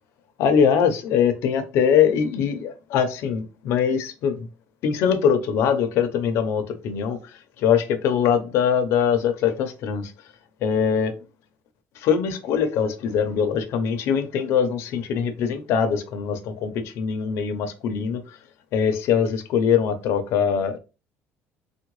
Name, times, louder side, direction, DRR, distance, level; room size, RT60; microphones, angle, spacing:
voice 1, 0.4-4.5 4.8-10.1 10.6-11.1 12.0-18.4 18.7-20.8, left 7 dB, 55° left, 0.6 m, -22 dB
3.6 x 2.2 x 3.1 m
cardioid pair, 180°, 5 cm